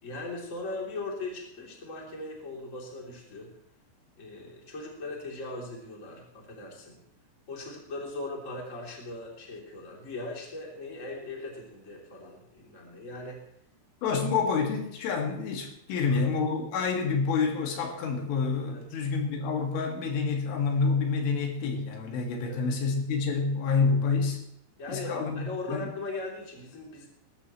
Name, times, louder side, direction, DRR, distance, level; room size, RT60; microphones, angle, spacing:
voice 1, 0.0-3.5 4.2-7.0 7.5-13.4 14.0-14.2 15.9-16.2 18.7-19.0 22.4-22.9 24.8-27.1, left 2 dB, 20° left, -1 dB, 2.8 m, -39 dB
voice 2, 14.0-24.4 24.9-25.9, left 4 dB, 80° left, 2 dB, 4.5 m, -28 dB
20.5 x 13.0 x 3.2 m, 0.76 s
omnidirectional pair, 5.5 m